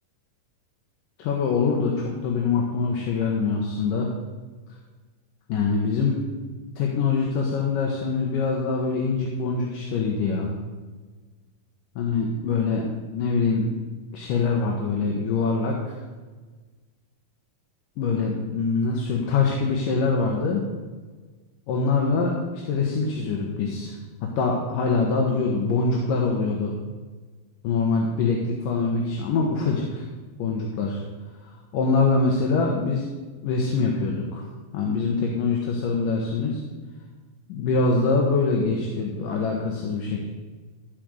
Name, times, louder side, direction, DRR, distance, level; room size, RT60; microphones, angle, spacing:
voice 1, 1.2-4.1 5.5-6.2 6.8-10.5 12.0-12.8 13.1-13.7 14.1-16.0 18.0-20.6 21.7-24.0 24.4-26.7 27.6-30.0 30.4-31.0 31.7-33.1 33.4-34.5 34.7-36.6 37.5-40.3, left 4 dB, 70° left, 0 dB, 2.7 m, -24 dB
14.0 x 5.2 x 7.7 m, 1.3 s
omnidirectional pair, 4.2 m